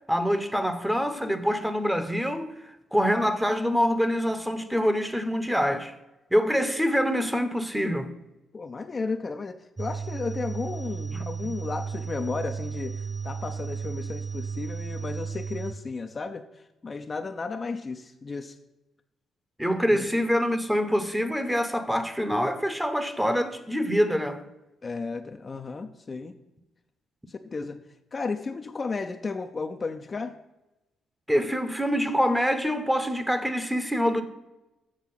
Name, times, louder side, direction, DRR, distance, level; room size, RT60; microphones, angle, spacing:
voice 1, 0.1-2.5 2.9-5.9 6.3-8.1 11.1-11.2 19.6-24.4 31.3-34.2, equal, 5° right, 0.8 m, -25 dB
voice 2, 8.5-16.4 16.8-18.6 19.9-20.0 24.8-26.3 27.3-27.8 28.1-30.4, left 4 dB, 35° left, 0.5 m, -34 dB
sound 1, 9.8-15.7, right 6 dB, 20° right, 0.4 m, -34 dB
7.6 x 6.0 x 5.6 m
cardioid pair, 90°, 0 cm